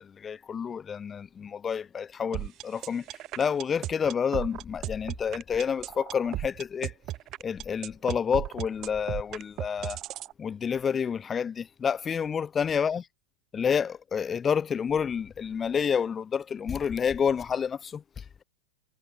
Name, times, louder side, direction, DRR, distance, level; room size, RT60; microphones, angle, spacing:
voice 1, 0.0-6.9 7.4-10.0 10.4-13.0 13.5-18.4, left 7 dB, 20° left, 0.7 m, -29 dB
sound 1, 2.3-10.3, right 15 dB, 35° right, 0.9 m, -35 dB
figure-of-eight pair, 90°, 0 cm